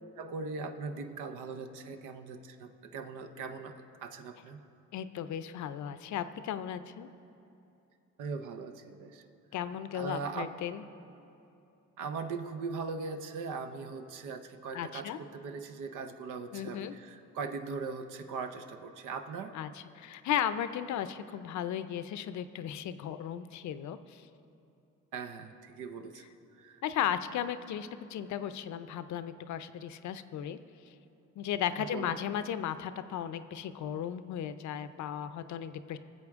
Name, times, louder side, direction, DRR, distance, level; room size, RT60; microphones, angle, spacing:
voice 1, 0.2-4.6 8.2-9.2 9.9-10.5 12.0-19.6 25.1-26.2 26.6-26.8 31.8-32.2, right 4 dB, 85° right, 7 dB, 0.7 m, -40 dB
voice 2, 4.9-7.1 9.5-10.8 14.7-15.2 16.5-16.9 19.5-19.7 20.0-24.2 26.8-30.6 31.4-36.0, left 10 dB, 70° left, 12 dB, 0.6 m, -35 dB
18.5 x 7.5 x 3.6 m, 2.8 s
cardioid pair, 90°, 30 cm